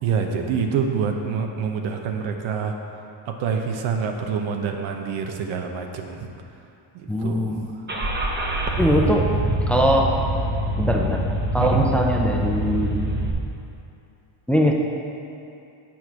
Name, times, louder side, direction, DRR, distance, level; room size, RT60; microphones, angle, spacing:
voice 1, 0.0-2.7 3.3-6.3 6.9-7.6 8.9-9.0 11.6-11.8, right 6 dB, 70° right, 3 dB, 0.9 m, -26 dB
voice 2, 7.1-7.7 8.8-9.3 9.7-10.1 10.8-11.2 11.5-13.0 14.5-14.7, equal, 5° left, 0 dB, 0.7 m, -21 dB
Car / Engine starting, 7.9-13.3, right 1 dB, 20° right, 1.0 m, -25 dB
7.4 x 4.6 x 5.7 m, 2.7 s
cardioid pair, 95°, 47 cm